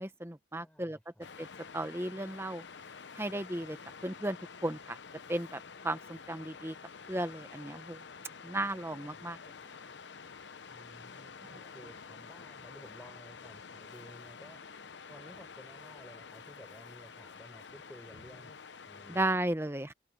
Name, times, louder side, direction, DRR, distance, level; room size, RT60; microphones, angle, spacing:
voice 1, 0.0-1.0 1.4-1.5 1.7-2.6 3.1-3.8 4.0-4.4 4.6-5.0 5.3-6.7 7.1-8.0 8.4-9.4 11.4-11.6 19.1-19.9, right 1 dB, 15° right, 1.1 m, -35 dB
voice 2, 0.6-1.3 10.6-14.7 15.1-19.3, equal, 5° left, 4.5 m, -54 dB
Waves surf, 1.2-19.3, left 5 dB, 75° left, 0.8 m, -49 dB
head